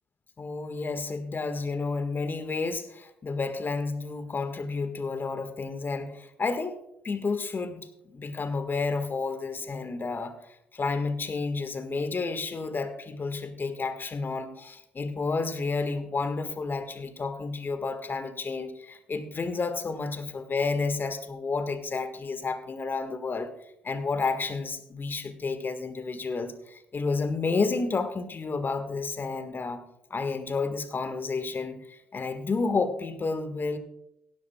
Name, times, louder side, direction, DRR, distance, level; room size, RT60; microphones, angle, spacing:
voice 1, 0.4-6.8 7.0-23.5 23.8-29.8 30.1-33.8, left 4 dB, 35° left, 1.6 m, -31 dB
16.5 x 13.0 x 2.3 m
hypercardioid pair, 50°, 6 cm